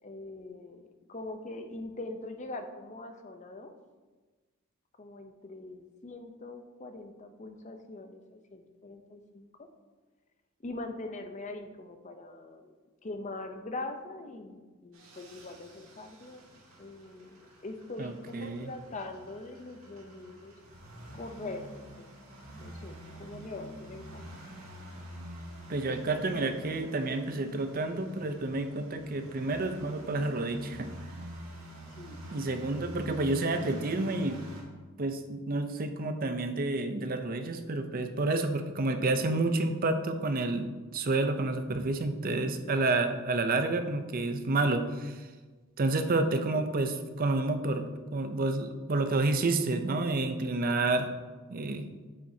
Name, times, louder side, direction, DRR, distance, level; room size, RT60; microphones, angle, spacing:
voice 1, 0.0-0.8 1.1-3.7 5.0-9.7 10.6-12.8 13.0-20.5 21.1-22.1 22.6-24.2 25.9-26.0 31.8-32.3, left 2 dB, 35° left, 6 dB, 0.6 m, -43 dB
sound 1, 14.9-34.6, equal, 85° right, 1.8 m, -47 dB
voice 2, 18.0-18.7 25.7-30.9 32.3-34.4 35.0-45.2 45.8-51.1 51.5-51.9, right 2 dB, 40° right, 8 dB, 0.6 m, -29 dB
8.7 x 7.4 x 2.8 m, 1.3 s
head